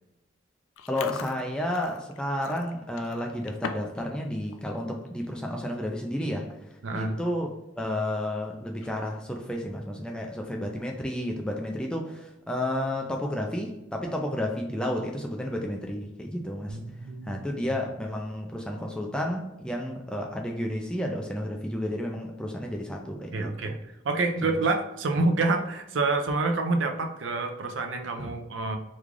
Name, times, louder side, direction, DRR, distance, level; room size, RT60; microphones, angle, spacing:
Chewing mastication, 0.8-4.0 4.3-4.6 5.1-5.3 6.0-6.1 6.4-6.7 7.1-7.2 8.7-9.2, left 6 dB, 90° left, 0.3 m, -40 dB
voice 1, 0.9-6.5 6.9-7.5 7.8-16.8 17.2-23.7 24.4-24.6 28.2-28.3, left 1 dB, 5° left, 0 dB, 0.3 m, -31 dB
voice 2, 6.8-7.2 16.7-17.4 23.3-23.8 24.0-28.8, right 3 dB, 75° right, 5 dB, 0.5 m, -27 dB
3.1 x 2.3 x 3.7 m, 0.92 s
head